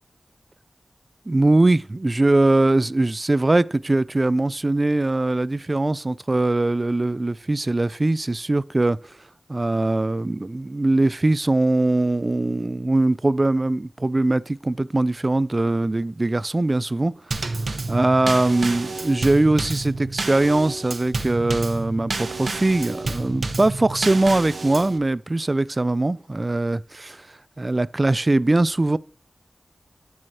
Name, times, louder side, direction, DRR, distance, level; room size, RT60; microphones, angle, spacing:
voice 1, 1.3-9.0 9.5-17.1 17.9-27.2 27.6-29.0, right 2 dB, 35° right, 0.3 m, -21 dB
Drum kit / Snare drum / Bass drum, 17.3-25.0, right 3 dB, 65° right, 0.8 m, -29 dB
12.0 x 4.7 x 2.9 m
wide cardioid pair, 75°, 0 cm